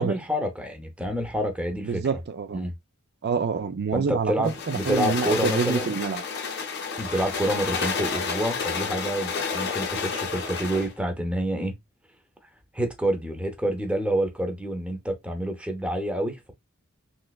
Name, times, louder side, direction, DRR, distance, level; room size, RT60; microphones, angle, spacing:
voice 1, 0.0-2.0 2.5-2.7 3.9-6.0 7.0-11.7 12.7-16.5, right 1 dB, 5° right, 0.6 m, -28 dB
voice 2, 1.8-2.6 3.2-6.2, right 5 dB, 50° right, 0.4 m, -27 dB
sound 1, 4.4-10.9, left 5 dB, 50° left, 0.6 m, -30 dB
3.2 x 3.1 x 2.3 m
head